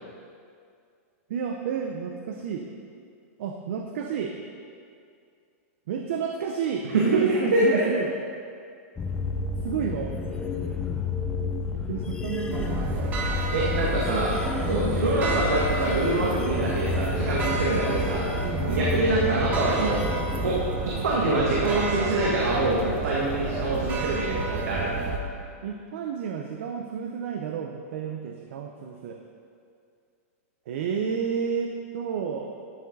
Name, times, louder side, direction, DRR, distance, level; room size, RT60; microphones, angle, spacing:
voice 1, 1.3-2.7 3.4-4.4 5.9-8.1 9.6-10.1 11.9-13.2 18.4-18.8 25.6-29.2 30.7-32.6, right 7 dB, 60° right, 4 dB, 0.7 m, -31 dB
voice 2, 7.1-7.8 13.5-14.4 14.6-20.0 20.4-20.6 20.8-24.9, right 2 dB, 90° right, -5 dB, 1.9 m, -25 dB
sound 1, 9.0-20.6, left 5 dB, 10° left, 0.6 m, -31 dB
sound 2, 12.5-25.2, right 3 dB, 20° right, 0.9 m, -30 dB
12.0 x 7.6 x 4.0 m, 2.3 s
supercardioid pair, 160°, 8 cm